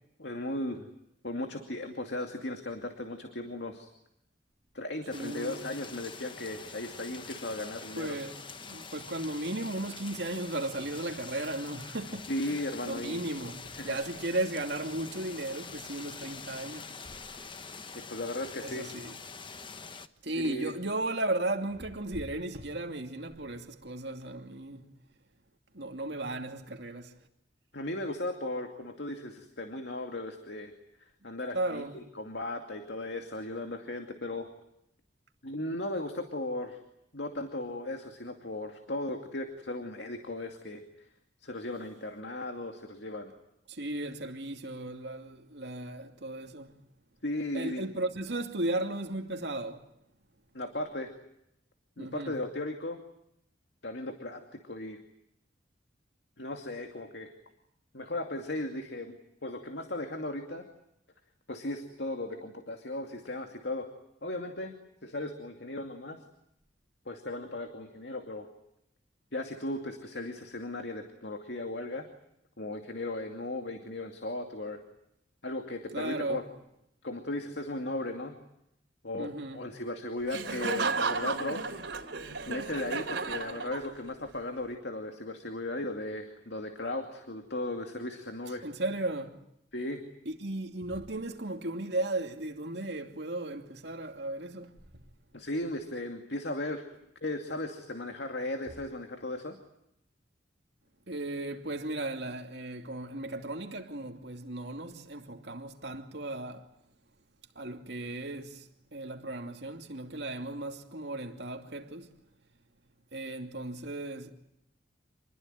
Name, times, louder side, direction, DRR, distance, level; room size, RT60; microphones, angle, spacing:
voice 1, 0.2-0.9 1.2-3.9 4.7-8.2 12.3-13.2 13.8-14.0 17.9-18.9 20.4-20.7 27.7-30.7 31.2-31.8 32.1-34.5 35.4-36.8 37.1-40.8 41.4-43.3 47.2-47.9 50.5-51.1 52.0-53.0 53.8-55.0 56.4-57.3 57.9-59.2 59.4-60.7 61.5-63.9 64.2-64.7 65.0-66.2 67.1-68.5 69.3-72.1 72.6-74.8 75.4-76.5 77.0-78.4 79.0-81.6 82.5-88.7 89.7-90.0 95.3-96.8 97.2-99.6, left 1 dB, 65° left, 2.5 m, -36 dB
sound 1, 5.1-20.1, left 5 dB, 25° left, 1.1 m, -45 dB
voice 2, 5.1-5.7 8.0-17.1 18.6-19.2 20.2-24.9 25.7-27.1 31.5-32.0 43.7-46.8 47.5-49.9 52.0-52.4 75.9-76.5 79.1-79.6 88.6-89.4 90.2-95.0 101.1-106.7 107.5-112.1 113.1-114.3, right 2 dB, 65° right, 2.7 m, -36 dB
Laughter, 80.3-84.2, right 4 dB, 85° right, 3.3 m, -33 dB
27.5 x 21.0 x 9.2 m
head